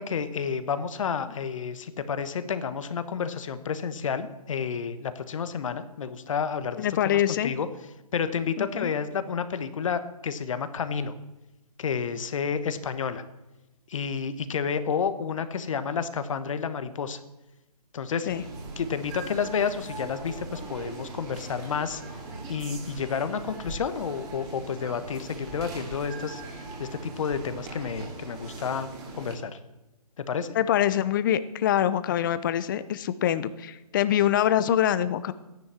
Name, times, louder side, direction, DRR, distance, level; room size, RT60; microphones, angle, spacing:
voice 1, 0.0-7.7 8.1-11.1 11.8-13.2 13.9-17.2 17.9-18.3 18.8-22.0 22.5-28.9 29.2-29.6 30.2-30.5, left 6 dB, 55° left, 11 dB, 1.3 m, -30 dB
voice 2, 6.8-7.5 8.6-8.9 18.3-18.4 30.5-35.3, left 11 dB, 30° left, 14 dB, 0.8 m, -24 dB
sound 1, 18.3-29.4, right 3 dB, 20° right, 2.7 m, -40 dB
14.0 x 10.5 x 7.5 m, 1.0 s
hypercardioid pair, 150°, 20 cm